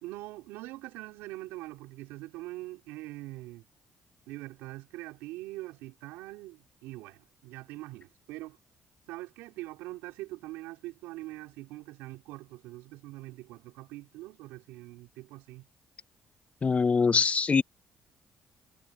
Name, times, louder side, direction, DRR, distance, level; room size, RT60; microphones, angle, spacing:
voice 1, 0.0-3.7 4.3-8.6 9.1-15.7, right 19 dB, 85° right, 4.6 m, -43 dB
voice 2, 16.6-17.6, left 5 dB, 40° left, 0.9 m, -23 dB
hypercardioid pair, 55°, 4 cm